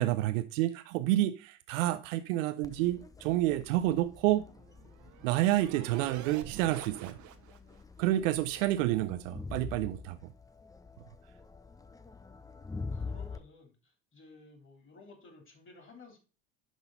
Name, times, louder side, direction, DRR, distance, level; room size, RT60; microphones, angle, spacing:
voice 1, 0.0-4.5 5.2-7.2 8.0-10.3, right 15 dB, 70° right, 0.7 m, -29 dB
Crowd, 2.6-13.4, left 4 dB, 10° left, 0.6 m, -45 dB
sound 1, 4.2-7.8, right 11 dB, 45° right, 1.1 m, -47 dB
voice 2, 12.9-16.2, left 3 dB, 30° left, 3.2 m, -55 dB
11.0 x 4.0 x 3.8 m
hypercardioid pair, 75°, 40 cm